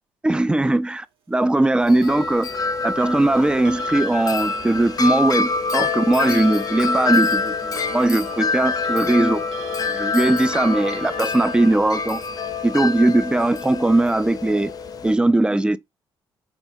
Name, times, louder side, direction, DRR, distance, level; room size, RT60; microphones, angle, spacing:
voice 1, 0.2-2.6 2.8-9.4 9.8-12.2 12.6-14.7 15.0-15.8, right 2 dB, 10° right, 0.3 m, -19 dB
Wind chime, 1.8-15.1, left 4 dB, 45° left, 0.5 m, -26 dB
Clock, 1.9-15.0, right 6 dB, 80° right, 1.0 m, -41 dB
4.3 x 2.3 x 2.6 m
cardioid pair, 75°, 9 cm